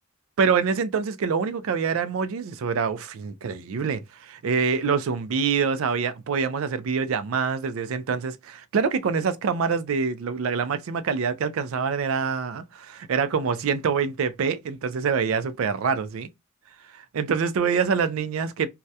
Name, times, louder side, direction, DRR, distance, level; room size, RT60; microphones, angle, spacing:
voice 1, 0.4-16.3 17.1-18.7, right 6 dB, 75° right, 0.4 m, -25 dB
2.3 x 2.1 x 2.6 m
head